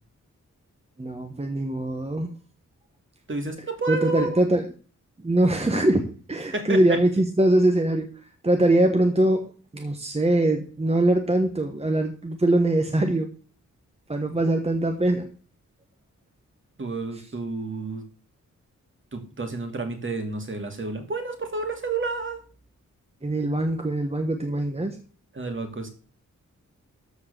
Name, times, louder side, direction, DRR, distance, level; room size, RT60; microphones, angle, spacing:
voice 1, 1.0-2.3 3.9-4.7 5.2-13.3 14.1-15.3 23.2-25.0, right 1 dB, 20° right, 5 dB, 1.2 m, -23 dB
voice 2, 3.3-4.4 6.5-7.0 16.8-18.1 19.1-22.4 25.3-25.9, right 3 dB, 40° right, 5 dB, 2.3 m, -30 dB
13.5 x 4.5 x 6.7 m, 0.39 s
wide cardioid pair, 125°, 31 cm